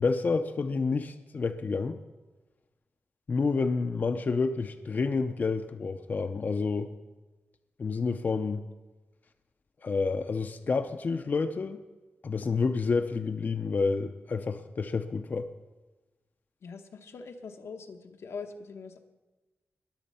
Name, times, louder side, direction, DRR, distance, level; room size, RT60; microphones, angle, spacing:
voice 1, 0.0-2.0 3.3-6.9 7.8-8.6 9.8-11.8 12.2-15.5, left 4 dB, 45° left, 8 dB, 0.6 m, -29 dB
voice 2, 16.6-19.0, left 5 dB, 85° left, 5 dB, 1.1 m, -42 dB
21.0 x 7.4 x 5.5 m, 1.2 s
wide cardioid pair, 155°, 4 cm